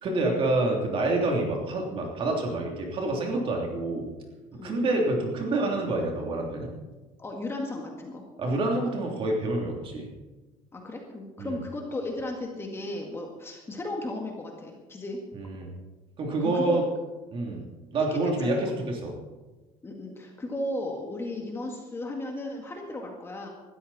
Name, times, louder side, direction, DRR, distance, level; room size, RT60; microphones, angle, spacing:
voice 1, 0.0-4.1 4.6-6.7 8.4-10.1 11.4-11.6 15.3-15.7 16.2-16.8 17.3-17.6 17.9-19.1, right 2 dB, 40° right, 1 dB, 3.1 m, -27 dB
voice 2, 7.2-8.2 10.7-15.2 16.3-16.8 18.1-18.5 19.8-23.5, left 2 dB, 15° left, 1 dB, 1.9 m, -35 dB
19.0 x 13.0 x 4.3 m, 1.2 s
cardioid pair, 165°, 14 cm